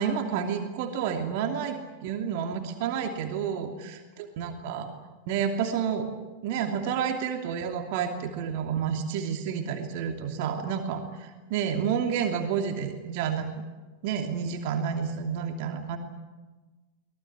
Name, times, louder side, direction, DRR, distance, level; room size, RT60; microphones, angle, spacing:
voice 1, 0.0-4.9 5.3-6.1 6.4-13.5 14.0-16.0, right 7 dB, 50° right, 5 dB, 2.8 m, -30 dB
24.0 x 19.0 x 9.8 m, 1.2 s
figure-of-eight pair, 90°, 0 cm